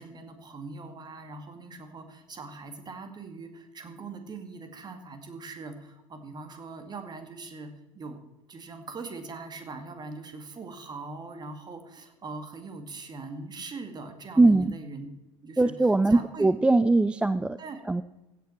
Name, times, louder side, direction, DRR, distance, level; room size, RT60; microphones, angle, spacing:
voice 1, 0.0-8.2 8.5-15.1 15.4-15.7 16.1-16.5 17.6-17.8, right 3 dB, 25° right, 7 dB, 2.1 m, -41 dB
voice 2, 14.4-14.7 15.6-17.6 17.9-18.0, right 2 dB, 5° right, 14 dB, 0.3 m, -21 dB
16.0 x 8.9 x 4.4 m, 1.0 s
figure-of-eight pair, 70°, 16 cm